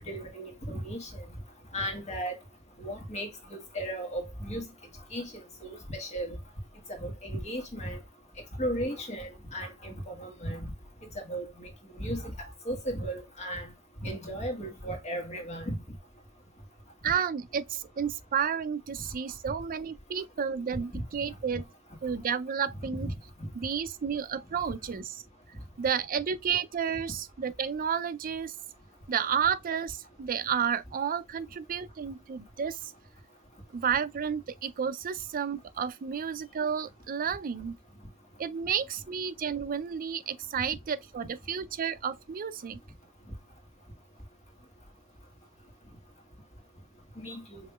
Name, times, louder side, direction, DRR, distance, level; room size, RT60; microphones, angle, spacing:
voice 1, 0.1-1.2 1.7-2.4 2.8-4.6 5.1-5.3 5.6-6.4 7.0-8.0 8.6-10.7 11.3-11.7 11.9-12.3 12.6-13.7 14.0-15.7 20.9-21.0 22.8-23.1 23.4-23.5 47.2-47.6, right 1 dB, 30° left, 1.5 m, -35 dB
voice 2, 17.0-21.7 22.0-23.1 23.5-25.2 25.8-28.5 29.1-32.9 33.7-37.8 38.4-42.8, right 7 dB, 40° right, 0.4 m, -31 dB
5.5 x 2.9 x 2.2 m
head